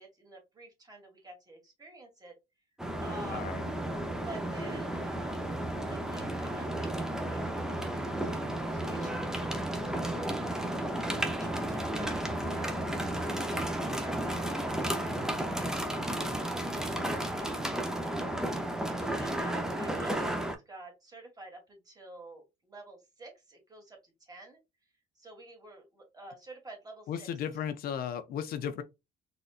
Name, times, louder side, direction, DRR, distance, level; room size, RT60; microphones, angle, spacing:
voice 1, 0.0-2.3 3.0-3.5 4.2-5.5 5.8-10.7 11.0-12.8 13.4-16.2 17.2-17.7 18.9-24.6 25.2-27.3, right 2 dB, 20° right, 1.8 m, -49 dB
sound 1, 2.8-20.5, right 1 dB, 5° right, 0.6 m, -33 dB
voice 2, 3.2-3.7 27.1-28.8, left 8 dB, 65° left, 0.5 m, -35 dB
4.0 x 2.5 x 2.4 m
cardioid pair, 110°, 17 cm